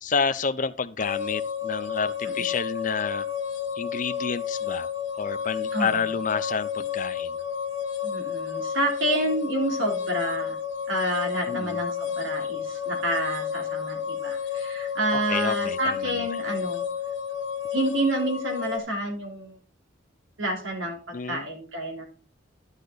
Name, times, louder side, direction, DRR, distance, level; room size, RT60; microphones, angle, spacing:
voice 1, 0.0-3.3 3.8-4.9 5.2-7.3 11.5-11.8 15.1-16.3 21.1-21.5, left 5 dB, 40° left, 12 dB, 0.6 m, -29 dB
sound 1, 1.0-18.8, left 7 dB, 70° left, 1.0 m, -31 dB
voice 2, 8.0-10.6 10.9-16.8 17.7-19.6 20.4-22.0, right 1 dB, 80° right, 1 dB, 3.3 m, -29 dB
11.5 x 6.7 x 4.0 m, 0.37 s
head